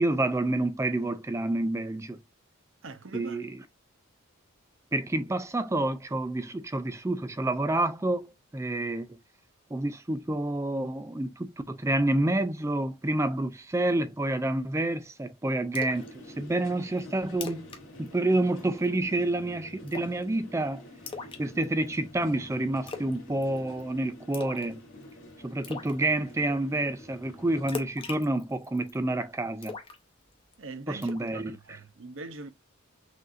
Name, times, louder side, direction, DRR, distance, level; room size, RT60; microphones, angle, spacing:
voice 1, 0.0-2.2 3.1-3.6 4.9-9.2 9.7-17.7 18.0-20.9 21.4-24.8 25.4-29.8 30.9-31.6, right 2 dB, 15° right, 0.3 m, -28 dB
voice 2, 2.8-3.4 30.6-32.5, right 3 dB, 60° right, 0.7 m, -42 dB
Splash splatter, 15.7-16.1 16.5-16.6 17.0-17.1 17.3-17.8 18.1-18.3 18.6-19.0 19.9-20.2 21.1-21.9 22.9-23.2 23.4-23.8 24.3-24.7 25.0-25.1 25.6-25.9 27.7-28.9 29.6-30.5 31.0-31.3, left 5 dB, 25° left, 0.7 m, -39 dB
sound 1, 15.9-27.7, left 1 dB, 65° left, 1.9 m, -48 dB
6.1 x 2.6 x 2.5 m
head